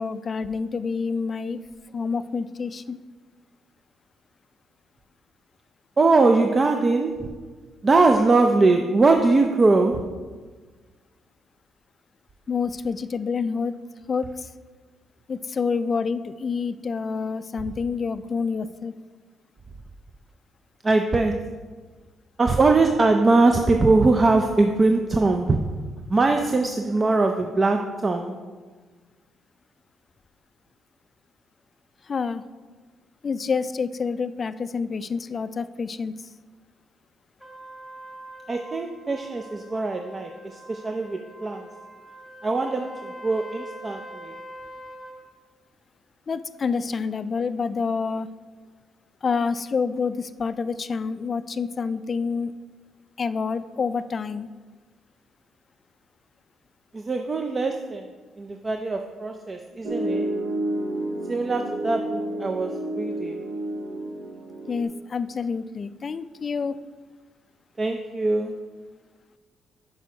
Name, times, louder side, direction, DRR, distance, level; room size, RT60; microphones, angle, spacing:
voice 1, 0.0-1.6 1.9-3.0 12.5-13.7 14.1-14.5 15.3-18.9 32.0-32.4 33.2-36.3 46.3-48.3 49.2-52.5 53.2-54.5 64.7-66.8, left 5 dB, 40° left, 13 dB, 0.3 m, -28 dB
voice 2, 6.0-7.3 7.8-10.1 20.8-21.5 22.4-25.7 26.1-28.3 38.5-40.3 40.7-41.6 42.4-42.9 43.2-44.4 56.9-58.0 58.4-60.3 61.3-63.4 67.8-68.6, right 3 dB, 30° right, 5 dB, 0.5 m, -21 dB
Trumpet, 37.4-45.2, equal, 5° right, 1.6 m, -43 dB
Piano, 59.8-64.8, right 1 dB, 65° right, 0.9 m, -30 dB
6.1 x 5.5 x 5.1 m, 1.4 s
cardioid pair, 90°, 0 cm